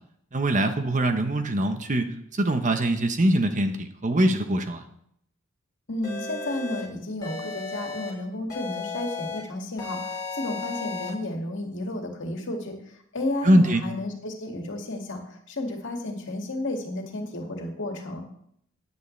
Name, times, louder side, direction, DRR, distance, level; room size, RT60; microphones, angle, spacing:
voice 1, 0.3-4.8 13.4-13.8, right 1 dB, 40° right, 7 dB, 1.0 m, -23 dB
voice 2, 5.9-18.2, left 1 dB, 60° left, 2 dB, 2.2 m, -32 dB
sound 1, 6.0-6.8 7.2-8.1 8.5-9.4 9.8-11.1, left 4 dB, 20° left, 6.0 m, -34 dB
15.0 x 9.9 x 3.3 m, 0.71 s
head